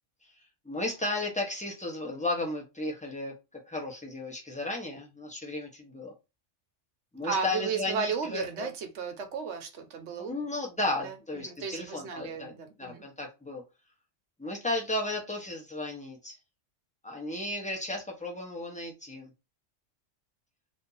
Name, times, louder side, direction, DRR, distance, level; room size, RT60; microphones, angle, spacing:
voice 1, 0.6-3.3 3.7-6.1 7.1-8.7 10.2-12.5 12.8-13.6 14.4-16.4 17.0-19.3, left 2 dB, 5° left, 0.9 m, -34 dB
voice 2, 7.2-10.3 11.0-13.1, right 5 dB, 70° right, 1.1 m, -34 dB
2.8 x 2.7 x 3.8 m
omnidirectional pair, 1.3 m